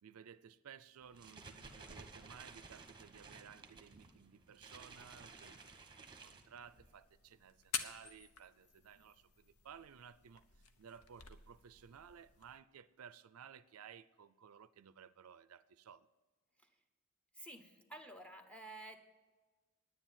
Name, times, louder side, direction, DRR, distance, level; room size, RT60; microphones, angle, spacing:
voice 1, 0.0-16.1, right 7 dB, 75° right, 16 dB, 0.5 m, -57 dB
sound 1, 1.0-6.9, right 3 dB, 20° right, 1.2 m, -56 dB
sound 2, 6.6-12.6, left 7 dB, 85° left, 1.0 m, -49 dB
voice 2, 17.3-19.0, right 2 dB, 5° left, 5 dB, 1.2 m, -52 dB
10.0 x 9.9 x 7.3 m, 1.3 s
head